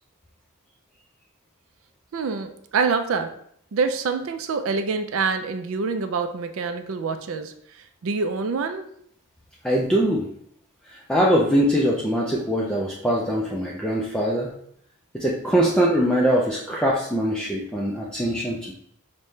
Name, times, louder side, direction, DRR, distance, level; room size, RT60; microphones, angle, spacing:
voice 1, 2.1-3.3 3.7-7.5 8.0-8.9, right 4 dB, 65° right, 8 dB, 0.4 m, -26 dB
voice 2, 9.6-10.3 10.9-14.5 15.1-18.7, equal, 5° left, -4 dB, 0.4 m, -22 dB
5.3 x 2.2 x 3.1 m, 0.68 s
head